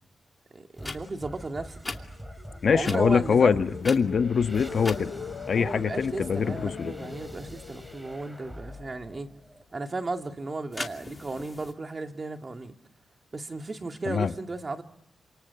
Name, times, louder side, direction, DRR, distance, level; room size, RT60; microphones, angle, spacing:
voice 1, 0.5-1.8 2.7-3.6 5.5-9.3 9.7-12.7 13.3-14.8, right 3 dB, 35° right, 5 dB, 2.3 m, -35 dB
sound 1, 0.7-1.0 1.8-2.0 2.8-3.0 3.8-4.3 4.8-5.0 10.7-11.7, left 2 dB, 20° left, 2.5 m, -37 dB
sound 2, 0.8-10.1, equal, 10° right, 3.0 m, -44 dB
sound 3, 2.1-9.2 9.6-10.0, left 7 dB, 75° left, 1.0 m, -42 dB
voice 2, 2.6-5.1 5.5-6.9 14.1-14.3, left 6 dB, 60° left, 9 dB, 1.4 m, -23 dB
29.0 x 27.0 x 7.0 m, 0.79 s
cardioid pair, 90°, 0 cm